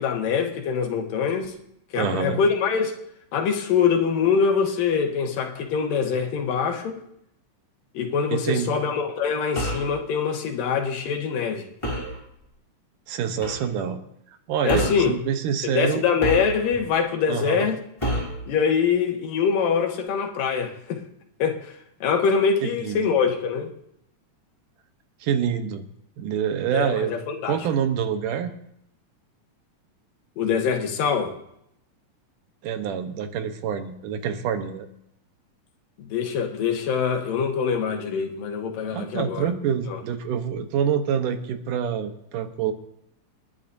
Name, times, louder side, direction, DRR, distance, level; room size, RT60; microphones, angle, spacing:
voice 1, 0.0-1.5 1.9-2.9 3.3-6.9 7.9-11.7 14.6-15.2 15.7-17.8 18.5-21.0 21.4-21.7 22.0-23.7 26.7-27.6 30.4-31.3 36.0-39.5 39.9-40.0, left 6 dB, 90° left, 3.1 m, -24 dB
voice 2, 2.0-2.4 8.3-8.7 13.1-14.0 14.5-16.1 17.3-17.7 22.6-23.2 25.2-25.8 26.2-27.2 27.5-28.5 32.6-34.9 38.9-42.7, right 8 dB, 75° right, 2.6 m, -26 dB
sound 1, 9.6-9.9 11.8-12.2 13.4-13.6 14.7-15.1 16.2-16.9 18.0-18.4, equal, 10° left, 3.1 m, -28 dB
28.0 x 10.5 x 2.7 m
omnidirectional pair, 3.8 m